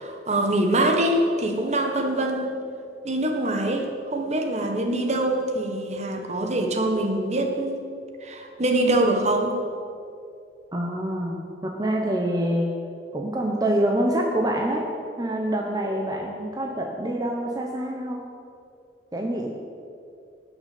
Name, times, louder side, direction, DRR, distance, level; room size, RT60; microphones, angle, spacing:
voice 1, 0.0-2.6 3.0-7.8 8.2-9.6, right 1 dB, 40° right, 4 dB, 1.5 m, -24 dB
voice 2, 10.7-12.7 13.1-14.9 15.2-18.2 19.1-19.5, right 1 dB, 20° right, 0 dB, 1.2 m, -26 dB
17.5 x 6.5 x 8.6 m, 2.5 s
head